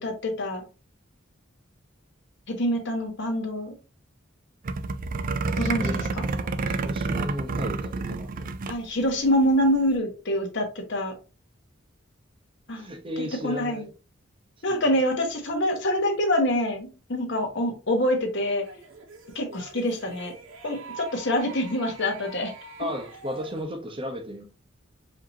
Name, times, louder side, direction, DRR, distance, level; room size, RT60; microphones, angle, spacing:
voice 1, 0.0-0.6 2.5-3.7 5.5-6.2 8.7-11.1 12.7-12.9 13.2-13.8 14.6-18.6 19.3-20.3 20.6-22.5, left 1 dB, 65° left, 1.2 m, -26 dB
Metal Scratch, 4.6-8.8 9.1-9.2 9.4-9.7, right 3 dB, 45° right, 0.4 m, -29 dB
voice 2, 5.8-6.1 6.4-8.5 12.8-13.9 14.7-14.8 22.8-24.4, equal, 25° right, 0.8 m, -35 dB
sound 1, 18.5-23.6, right 3 dB, 85° right, 0.9 m, -45 dB
5.0 x 2.8 x 2.7 m
head